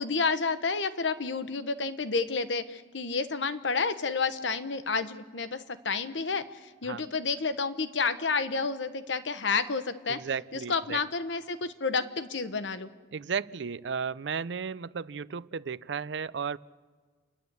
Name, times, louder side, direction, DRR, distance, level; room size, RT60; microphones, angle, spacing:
voice 1, 0.0-10.2 10.5-12.9, left 4 dB, 85° left, 12 dB, 1.1 m, -30 dB
voice 2, 10.1-11.0 13.1-16.6, right 6 dB, 70° right, 19 dB, 0.5 m, -34 dB
29.0 x 11.0 x 8.2 m, 1.5 s
head